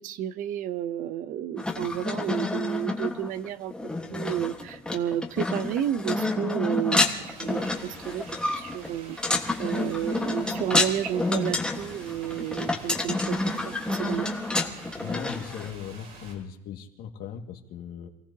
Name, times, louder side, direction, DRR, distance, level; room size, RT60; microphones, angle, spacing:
voice 1, 0.0-3.7 4.1-9.2 9.6-14.3, right 10 dB, 55° right, 13 dB, 0.7 m, -31 dB
sound 1, 1.6-15.7, left 2 dB, 5° left, 1.4 m, -29 dB
sound 2, 7.1-16.3, right 3 dB, 80° right, 6.9 m, -48 dB
voice 2, 15.0-18.1, left 8 dB, 65° left, 3 dB, 2.0 m, -38 dB
27.5 x 17.0 x 2.8 m, 0.84 s
cardioid pair, 160°, 17 cm